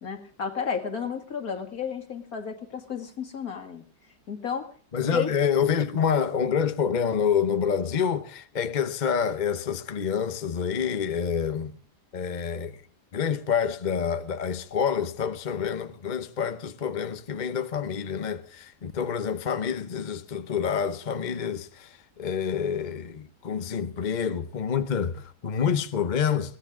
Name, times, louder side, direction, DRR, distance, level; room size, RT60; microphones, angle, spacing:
voice 1, 0.0-3.8 4.3-4.7 5.1-5.3, left 6 dB, 60° left, 2.6 m, -32 dB
voice 2, 4.9-11.8 12.1-12.8 13.1-26.6, left 7 dB, 40° left, 0.7 m, -27 dB
22.0 x 17.5 x 3.7 m
omnidirectional pair, 1.8 m